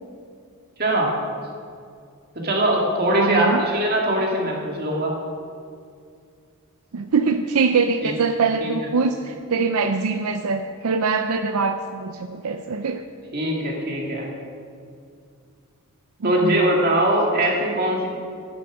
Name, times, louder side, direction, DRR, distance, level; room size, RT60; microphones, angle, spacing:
voice 1, 0.8-1.1 2.4-5.1 8.0-8.1 8.6-8.9 13.3-14.3 16.2-18.1, right 1 dB, 45° right, -1 dB, 2.2 m, -21 dB
voice 2, 3.1-3.6 6.9-13.0 16.2-16.6, right 4 dB, 80° right, 7 dB, 0.5 m, -23 dB
10.5 x 10.0 x 6.2 m, 2.3 s
head